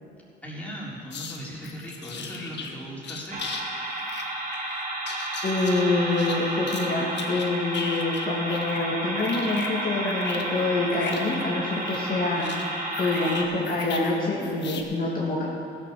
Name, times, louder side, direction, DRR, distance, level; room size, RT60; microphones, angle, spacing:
voice 1, 0.4-3.4, equal, 5° left, -6 dB, 3.9 m, -38 dB
sound 1, 1.1-1.4 1.6-2.7 3.0-3.6 3.9-6.9 7.1-8.9 9.1-14.2 14.4-14.8, left 5 dB, 60° left, 1.4 m, -37 dB
sound 2, 3.3-13.4, right 2 dB, 40° right, 2.1 m, -32 dB
voice 2, 5.4-12.5 13.0-15.5, left 2 dB, 45° left, -5 dB, 2.2 m, -26 dB
15.0 x 7.2 x 6.9 m, 2.5 s
cardioid pair, 90°, 20 cm